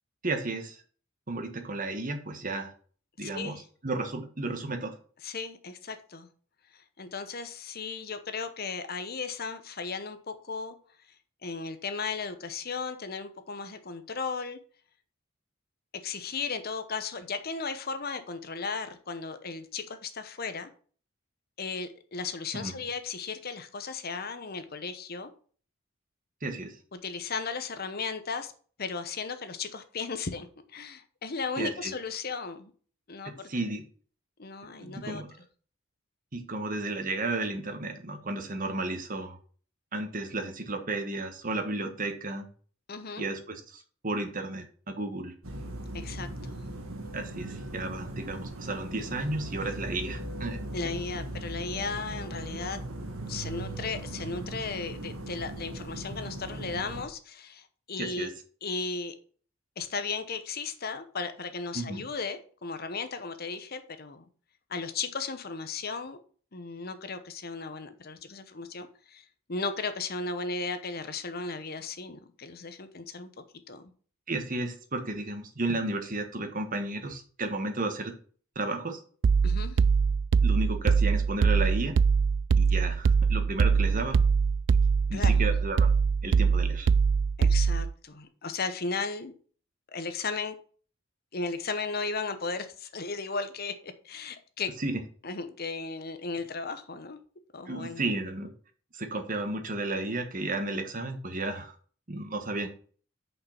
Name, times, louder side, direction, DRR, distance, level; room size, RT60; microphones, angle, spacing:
voice 1, 0.2-0.8 1.3-2.7 3.2-4.9 22.5-22.8 26.4-26.8 31.6-31.9 33.2-33.8 34.8-35.3 36.3-39.4 39.9-42.4 43.2-45.3 47.1-51.0 58.0-58.3 61.7-62.0 74.3-78.1 78.5-79.0 80.4-82.0 82.6-84.2 85.1-85.9 86.2-86.9 94.8-95.0 97.7-98.5 98.9-101.7 102.1-102.7, right 2 dB, 40° right, 6 dB, 1.4 m, -33 dB
voice 2, 3.2-3.6 5.2-6.3 7.0-10.7 11.4-14.6 16.0-20.7 21.6-25.3 26.9-28.5 28.8-32.7 33.1-33.5 34.4-35.2 42.9-43.2 45.9-46.6 50.7-52.8 53.3-58.3 58.6-59.1 59.8-64.2 64.7-66.2 66.5-73.8 79.4-79.8 85.1-85.4 87.4-89.3 89.9-90.6 91.3-94.7 95.2-97.2 97.5-98.0, left 4 dB, 45° left, 10 dB, 0.9 m, -35 dB
sound 1, 45.4-57.0, right 1 dB, 85° right, 1.7 m, -39 dB
sound 2, 79.2-87.9, right 5 dB, 60° right, 0.3 m, -23 dB
6.6 x 5.5 x 5.8 m, 0.43 s
head